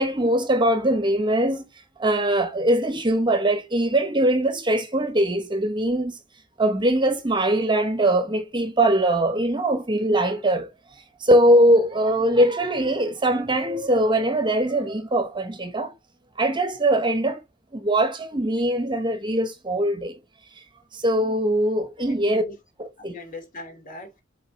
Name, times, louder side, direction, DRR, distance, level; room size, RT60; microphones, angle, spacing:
voice 1, 0.0-1.7 2.0-6.2 6.6-10.7 11.2-15.9 16.4-17.4 17.7-20.2 20.9-22.4 22.8-23.1, right 1 dB, 25° right, 1.0 m, -21 dB
voice 2, 22.0-22.6 23.0-24.2, left 2 dB, 45° left, 2.7 m, -41 dB
7.4 x 3.8 x 4.0 m
head